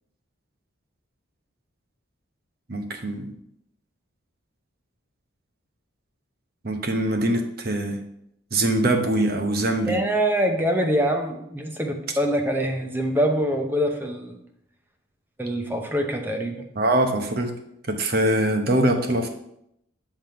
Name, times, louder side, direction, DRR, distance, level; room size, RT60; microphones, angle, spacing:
voice 1, 2.7-3.3 6.6-8.0 8.5-10.0 16.8-17.5 17.9-19.3, right 1 dB, 45° right, 5 dB, 0.9 m, -23 dB
voice 2, 9.9-14.4 15.4-16.6, equal, 10° right, 4 dB, 0.7 m, -24 dB
7.7 x 3.5 x 5.6 m, 0.77 s
head